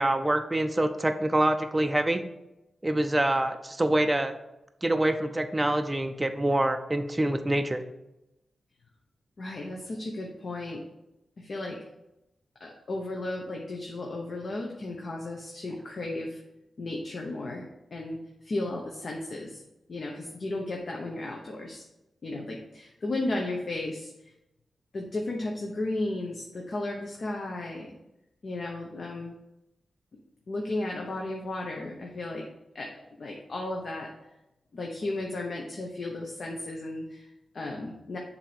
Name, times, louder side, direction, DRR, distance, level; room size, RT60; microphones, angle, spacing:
voice 1, 0.0-2.2 2.8-4.3 4.8-7.8, right 1 dB, 20° right, 7 dB, 0.4 m, -25 dB
voice 2, 9.4-10.8 11.4-11.8 12.6-16.4 16.8-19.6 19.9-21.8 22.2-24.3 24.9-27.9 28.4-29.4 30.1-30.2 30.5-32.4 32.7-34.1 34.7-38.2, left 2 dB, 55° left, 0 dB, 0.8 m, -34 dB
7.2 x 2.8 x 5.0 m, 0.91 s
wide cardioid pair, 90°, 0 cm